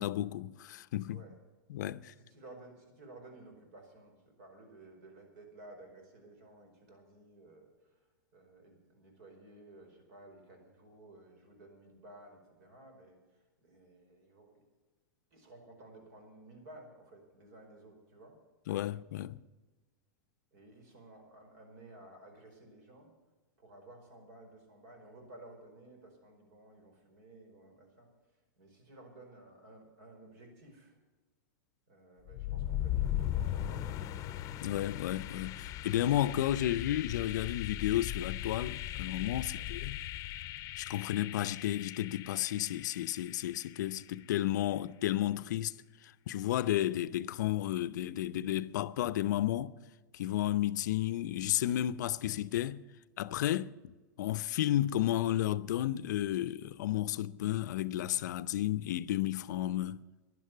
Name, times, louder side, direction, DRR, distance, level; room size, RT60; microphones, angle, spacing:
voice 1, 0.0-1.2 1.7-2.1 18.7-19.4 34.6-40.0 40.8-45.7 46.3-49.7 50.1-52.8 53.2-60.0, left 13 dB, 70° left, 0.5 m, -32 dB
voice 2, 2.1-8.0 8.3-14.6 15.3-18.4 20.5-23.1 23.6-28.1 28.6-31.0 31.9-34.3 39.4-39.7, right 2 dB, 60° right, 4.9 m, -55 dB
sound 1, 32.3-44.1, left 12 dB, 35° left, 0.7 m, -38 dB
11.0 x 11.0 x 9.2 m
hypercardioid pair, 115°, 10 cm